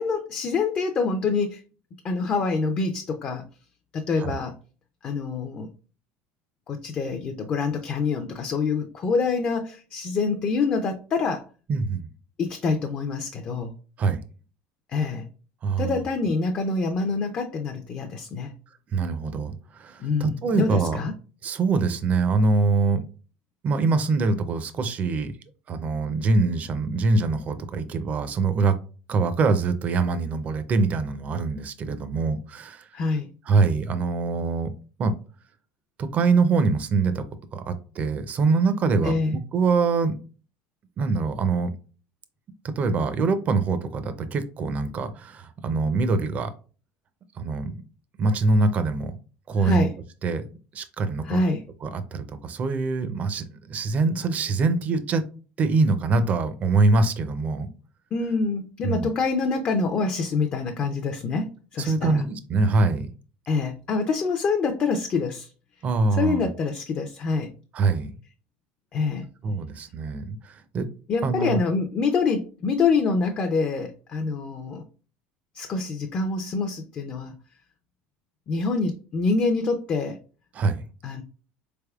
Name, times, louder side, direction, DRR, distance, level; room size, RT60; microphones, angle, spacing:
voice 1, 0.0-1.6 2.0-3.4 3.9-4.5 5.0-5.7 6.7-11.4 12.4-13.7 14.9-15.3 15.8-18.5 20.0-21.1 32.9-33.3 39.0-39.4 49.6-49.9 51.2-51.6 58.1-62.2 63.5-65.5 66.2-67.5 68.9-69.3 71.1-74.8 75.6-77.3 78.5-80.2 81.0-81.2, left 4 dB, 30° left, 0.4 m, -26 dB
voice 2, 11.7-12.1 14.0-14.2 15.6-16.0 18.9-21.0 21.4-23.0 23.6-25.3 25.7-28.8 29.1-32.8 33.5-34.7 35.0-35.1 36.0-37.2 37.5-40.2 41.0-41.7 42.6-46.5 47.4-47.8 48.2-49.1 49.5-49.9 50.2-50.4 50.7-51.4 51.8-55.2 55.6-57.7 58.8-59.1 61.8-63.1 65.8-66.5 67.7-68.1 69.4-70.9 71.2-71.6 80.5-80.8, right 4 dB, 35° right, 0.4 m, -24 dB
4.1 x 3.4 x 2.3 m
cardioid pair, 140°, 5 cm